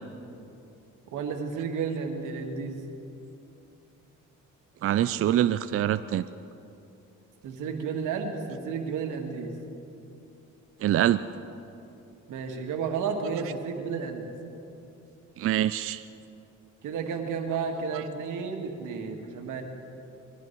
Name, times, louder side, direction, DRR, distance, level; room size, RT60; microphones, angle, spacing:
voice 1, 1.1-2.8 7.4-9.6 12.3-14.3 16.8-19.6, right 5 dB, 85° right, 4 dB, 1.8 m, -32 dB
voice 2, 4.8-6.2 10.8-11.2 15.4-16.1, right 12 dB, 50° right, 13 dB, 0.4 m, -24 dB
21.0 x 14.0 x 4.6 m, 2.8 s
cardioid pair, 90°, 30 cm